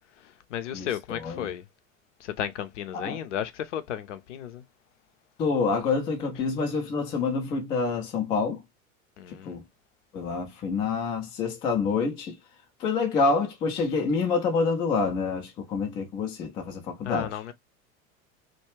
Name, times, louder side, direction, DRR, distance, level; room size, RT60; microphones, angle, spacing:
voice 1, 0.2-1.6 2.2-4.6 6.4-6.5 9.2-9.6 17.0-17.5, left 10 dB, 60° left, 0.6 m, -34 dB
voice 2, 0.7-1.5 2.9-3.2 5.4-8.6 9.5-9.6 10.1-12.4 12.8-17.5, left 4 dB, 15° left, 0.3 m, -27 dB
2.3 x 2.1 x 3.0 m
figure-of-eight pair, 80°, 41 cm